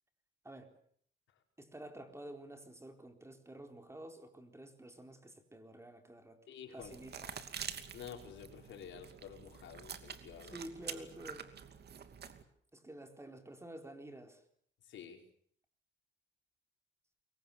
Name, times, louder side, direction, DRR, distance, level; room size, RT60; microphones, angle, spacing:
voice 1, 0.4-0.8 1.6-6.4 6.7-7.4 10.4-11.5 12.7-14.4, right 1 dB, 15° right, 6 dB, 4.1 m, -50 dB
voice 2, 6.5-6.9 7.9-10.6 14.9-15.2, left 8 dB, 75° left, 3 dB, 5.2 m, -50 dB
sound 1, 6.8-12.4, right 7 dB, 55° right, 2.7 m, -47 dB
29.5 x 23.0 x 7.2 m, 0.62 s
cardioid pair, 90°, 20 cm